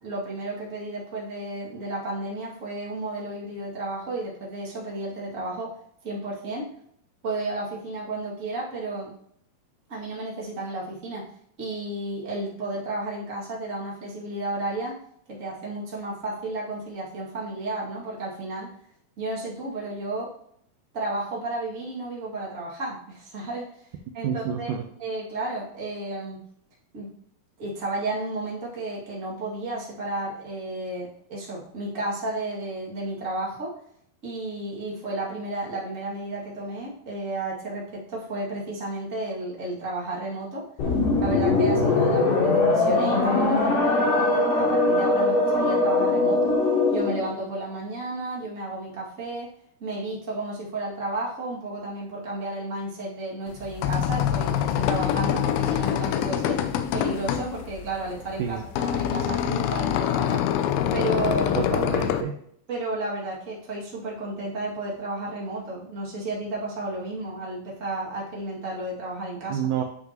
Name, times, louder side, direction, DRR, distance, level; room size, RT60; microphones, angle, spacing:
voice 1, 0.0-5.7 6.0-6.7 7.2-9.1 9.9-11.3 11.6-15.0 15.3-18.7 19.2-20.3 20.9-23.7 24.1-24.7 25.0-26.4 26.9-27.1 27.6-33.7 34.2-40.7 41.2-46.6 46.9-49.5 49.8-56.6 56.9-60.4 60.9-61.6 62.7-69.7, right 2 dB, 25° right, -5 dB, 2.0 m, -32 dB
voice 2, 24.2-24.8 58.4-58.6 61.5-62.4 69.5-69.8, right 8 dB, 75° right, 3 dB, 1.9 m, -28 dB
sound 1, 40.8-47.3, left 2 dB, 60° left, 3.9 m, -21 dB
sound 2, 53.5-62.2, left 10 dB, 80° left, 2.4 m, -25 dB
9.6 x 5.8 x 3.0 m, 0.68 s
omnidirectional pair, 4.4 m